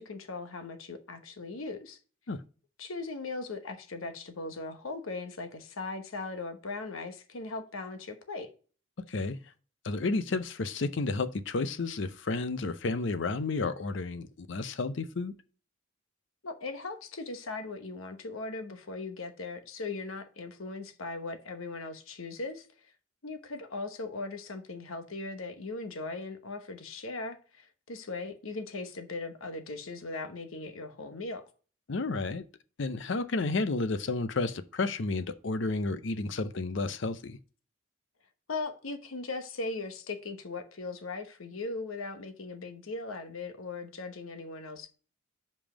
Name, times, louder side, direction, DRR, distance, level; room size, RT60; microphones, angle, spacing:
voice 1, 0.0-2.0 2.8-8.5 16.4-22.7 23.2-31.4 38.5-44.9, left 3 dB, 85° left, 1.0 m, -39 dB
voice 2, 9.8-15.3 31.9-32.4 32.8-37.4, left 3 dB, 60° left, 0.6 m, -31 dB
5.4 x 5.2 x 4.9 m
head